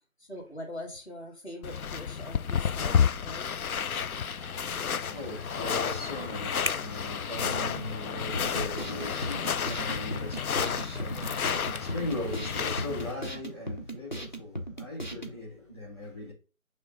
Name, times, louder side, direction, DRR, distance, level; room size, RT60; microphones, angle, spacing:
voice 1, 0.2-3.6, equal, 50° left, 2.3 m, -42 dB
sound 1, 1.6-13.1, left 7 dB, 85° left, 0.6 m, -31 dB
sound 2, 3.6-13.4, right 1 dB, 45° right, 0.5 m, -44 dB
voice 2, 4.3-16.3, left 1 dB, 20° left, 2.0 m, -39 dB
sound 3, 8.3-15.4, right 1 dB, 35° left, 0.9 m, -38 dB
7.9 x 3.3 x 3.8 m
figure-of-eight pair, 180°, 43 cm